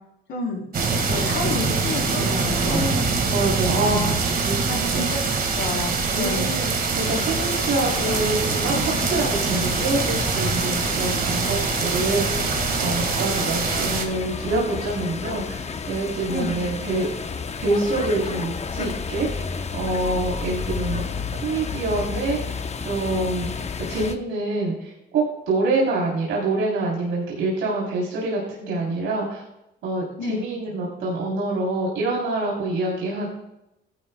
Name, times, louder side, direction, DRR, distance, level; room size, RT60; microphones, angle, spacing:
voice 1, 0.3-0.7 1.1-2.9 4.7-5.2 5.5-6.6 16.3-16.6 30.2-30.5, left 3 dB, 75° left, -1 dB, 3.5 m, -30 dB
sound 1, 0.7-14.0, right 4 dB, 45° right, 1.8 m, -24 dB
voice 2, 2.6-5.1 6.1-6.7 6.9-12.4 12.8-17.1 17.5-19.5 19.7-21.0 21.4-23.5 23.8-29.4 29.8-33.3, right 2 dB, 80° right, -4 dB, 3.4 m, -26 dB
sound 2, 7.0-24.2, left 5 dB, 35° left, 0.8 m, -32 dB
15.0 x 11.5 x 2.2 m, 0.88 s
cardioid pair, 90°, 20 cm